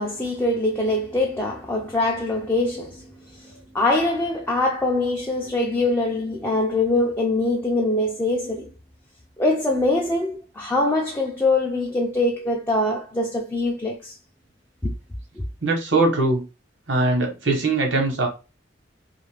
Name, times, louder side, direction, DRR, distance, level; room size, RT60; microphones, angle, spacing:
voice 1, 0.0-8.7 9.4-14.2 14.8-14.9, left 2 dB, 10° left, 0.4 m, -23 dB
voice 2, 15.6-16.4 16.9-18.3, right 2 dB, 85° right, 1.0 m, -21 dB
2.6 x 2.5 x 3.3 m
head